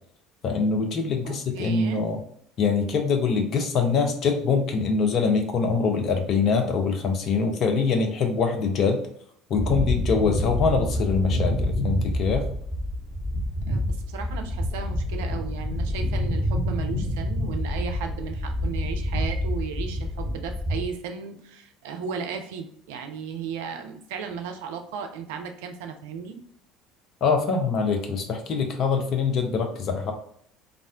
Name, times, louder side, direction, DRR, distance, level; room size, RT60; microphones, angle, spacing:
voice 1, 0.4-2.2 2.6-9.0 9.5-12.4 27.2-30.1, left 5 dB, 45° left, 4 dB, 0.5 m, -24 dB
voice 2, 1.2-2.0 13.7-26.4, right 6 dB, 65° right, 5 dB, 0.4 m, -35 dB
sound 1, 9.6-20.8, left 1 dB, 15° left, 1.1 m, -27 dB
2.4 x 2.1 x 3.4 m, 0.66 s
figure-of-eight pair, 65°, 0 cm